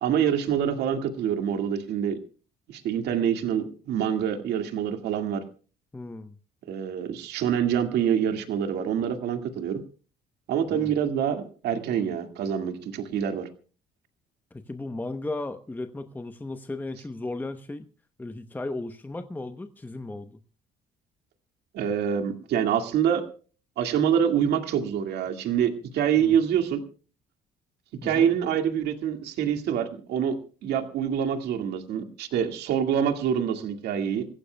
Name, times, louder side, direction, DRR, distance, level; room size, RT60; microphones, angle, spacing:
voice 1, 0.0-2.2 2.7-5.4 6.7-9.8 10.5-13.5 21.7-23.3 23.8-26.8 28.0-34.3, right 8 dB, 75° right, 6 dB, 2.1 m, -26 dB
voice 2, 5.9-6.4 10.7-10.9 14.5-17.9 18.2-20.4 26.2-26.3 28.0-28.3, left 2 dB, 10° left, 8 dB, 0.9 m, -35 dB
27.5 x 15.5 x 2.3 m, 0.37 s
cardioid pair, 110°, 17 cm